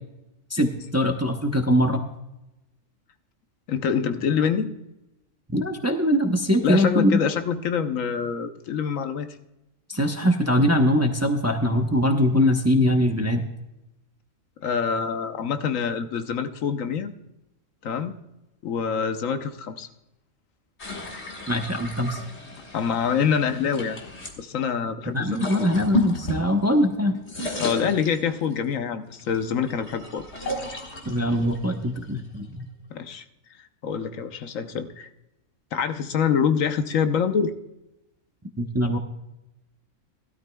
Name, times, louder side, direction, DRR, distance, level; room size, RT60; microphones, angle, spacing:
voice 1, 0.5-2.0 5.5-7.2 9.9-13.4 21.5-22.2 25.1-27.2 31.1-32.7 38.6-39.0, equal, 15° right, 4 dB, 0.7 m, -22 dB
voice 2, 3.7-4.7 6.6-9.4 14.6-17.1 17.8-18.2 18.6-19.9 22.7-24.0 24.4-25.5 27.6-30.2 32.9-33.2 33.6-35.1 35.7-37.5, left 7 dB, 80° left, 9 dB, 1.2 m, -26 dB
sound 1, 20.8-24.4 25.2-26.9 27.1-28.6 29.2-32.6, left 2 dB, 55° left, 2.1 m, -33 dB
16.5 x 12.5 x 2.3 m, 0.91 s
omnidirectional pair, 1.4 m